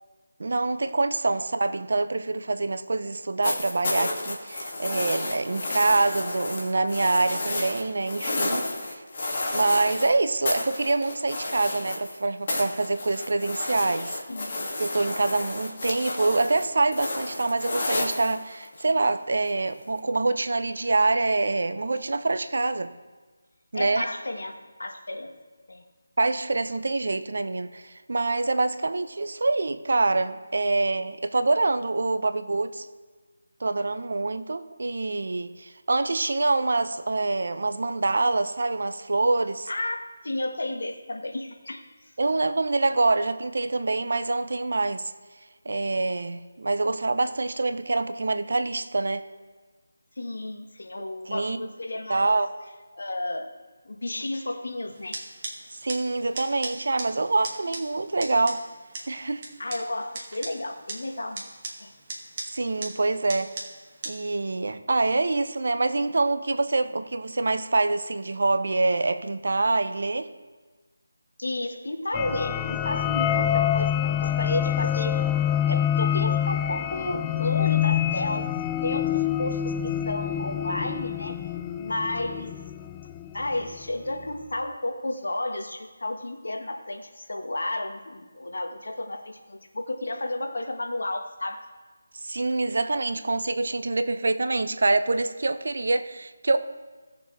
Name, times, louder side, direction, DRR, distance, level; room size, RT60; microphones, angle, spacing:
voice 1, 0.4-9.0 9.5-14.2 14.8-22.9 23.7-24.0 26.2-32.8 33.6-39.7 42.2-45.1 45.6-49.2 51.0-51.7 52.1-52.5 55.7-58.6 59.1-59.4 62.5-63.5 64.1-70.3 92.2-96.6, right 3 dB, 65° right, 10 dB, 0.8 m, -25 dB
sound 1, 3.4-10.1 10.4-12.2 12.5-18.8 20.0-20.1, left 2 dB, 40° left, 2.3 m, -31 dB
voice 2, 14.3-14.7 23.7-25.3 25.7-25.8 39.7-39.9 40.2-41.8 45.7-45.8 50.2-52.3 52.9-53.5 53.8-55.2 59.6-61.5 61.8-61.9 71.4-75.3 75.6-81.4 81.8-82.5 83.3-91.6, left 2 dB, 75° left, 4 dB, 1.5 m, -32 dB
sound 2, 54.9-64.1, right 2 dB, 35° right, 2.0 m, -40 dB
sound 3, 72.1-83.4, left 10 dB, 15° left, 0.3 m, -26 dB
17.0 x 6.8 x 3.4 m, 1.3 s
figure-of-eight pair, 160°, 0 cm